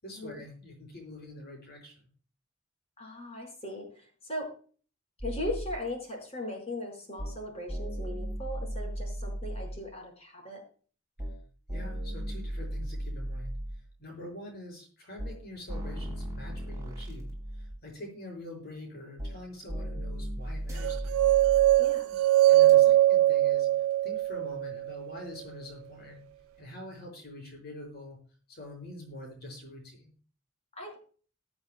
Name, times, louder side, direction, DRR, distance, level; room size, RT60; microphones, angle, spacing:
voice 1, 0.0-2.1 11.7-13.5 14.0-21.2 22.0-22.2 22.5-23.7 24.0-26.2 26.6-28.2 28.5-30.1, left 1 dB, 50° left, 0 dB, 6.2 m, -45 dB
voice 2, 3.0-4.5 5.2-10.6 21.8-22.1 30.8-31.0, left 1 dB, 30° left, 2 dB, 4.8 m, -38 dB
sound 1, 5.2-5.8 7.2-7.4 7.7-9.8 11.2-11.4 11.7-13.8 15.2-15.4 15.7-17.8 19.2-19.4 19.7-21.8 22.7-22.8, equal, 15° right, 4.4 m, -36 dB
sound 2, 20.8-24.9, right 14 dB, 85° right, 0.4 m, -22 dB
21.5 x 8.0 x 2.3 m, 0.41 s
head